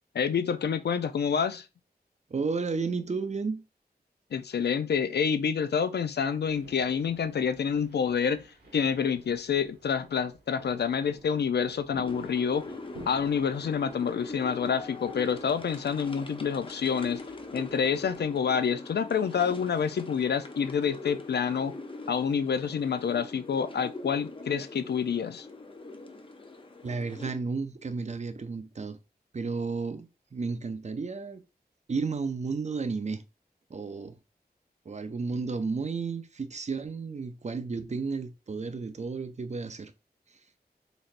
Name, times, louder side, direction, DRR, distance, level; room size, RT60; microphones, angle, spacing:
voice 1, 0.1-1.7 4.3-8.5 8.7-12.7 13.1-17.2 17.5-21.7 22.1-25.5, left 7 dB, 80° left, 0.4 m, -28 dB
voice 2, 2.3-3.6 26.8-29.0 29.3-31.4 31.9-33.2 33.7-34.1 34.9-39.9, right 4 dB, 45° right, 0.5 m, -32 dB
sound 1, 6.4-18.3, right 1 dB, 80° right, 1.4 m, -52 dB
sound 2, 12.0-27.3, left 2 dB, 30° left, 0.6 m, -43 dB
4.0 x 3.2 x 2.5 m
wide cardioid pair, 90°, 17 cm